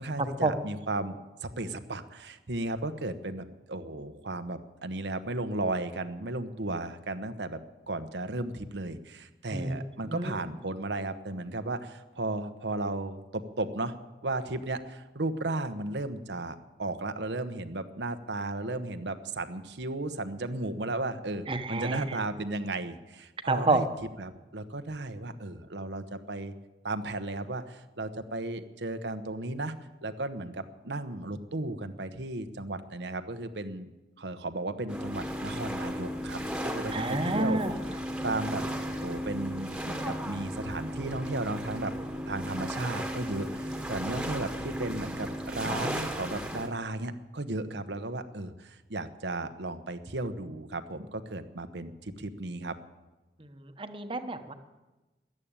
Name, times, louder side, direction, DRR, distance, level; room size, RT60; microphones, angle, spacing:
voice 1, 0.0-7.6 7.9-13.9 14.2-23.9 24.2-26.5 26.8-29.7 30.0-33.9 34.2-37.6 38.2-38.6 39.0-41.9 42.3-52.7, right 2 dB, 80° right, 10 dB, 1.1 m, -35 dB
voice 2, 9.5-10.3 21.5-22.2 23.5-23.8 36.9-37.7 53.4-54.5, right 2 dB, 30° right, 8 dB, 1.1 m, -29 dB
sound 1, 34.9-46.7, equal, 5° right, 1.5 m, -35 dB
14.0 x 11.0 x 8.9 m, 1.1 s
head